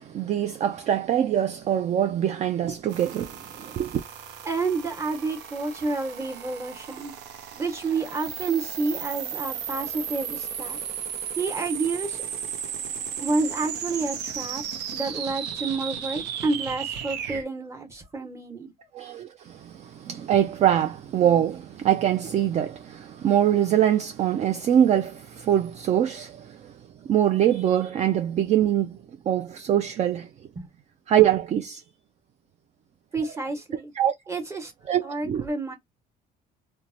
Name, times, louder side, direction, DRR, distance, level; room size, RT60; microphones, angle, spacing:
voice 1, 0.0-4.0 18.9-29.0 29.3-30.3 31.1-31.8 34.0-34.1 34.9-35.5, right 10 dB, 40° right, 0.4 m, -23 dB
sound 1, 2.9-17.4, right 8 dB, 85° right, 0.7 m, -35 dB
voice 2, 4.4-7.1 7.5-10.8 11.4-12.2 13.2-14.6 14.9-18.7 30.6-30.7 33.1-33.9 34.3-34.7 35.0-35.7, right 3 dB, 15° right, 1.0 m, -29 dB
2.9 x 2.1 x 2.5 m
cardioid pair, 110°, 17 cm